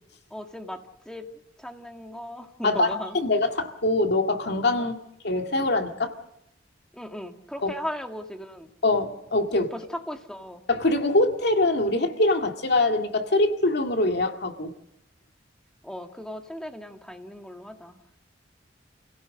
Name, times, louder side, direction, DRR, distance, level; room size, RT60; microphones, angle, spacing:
voice 1, 0.3-1.3 1.6-3.2 4.8-4.9 6.9-8.7 9.5-10.6 15.8-18.0, left 1 dB, 5° left, 4 dB, 1.7 m, -37 dB
voice 2, 2.6-4.9 5.2-6.1 7.6-7.7 8.8-9.7 10.7-14.7, left 2 dB, 65° left, 4 dB, 2.1 m, -23 dB
29.0 x 17.0 x 6.5 m, 0.84 s
head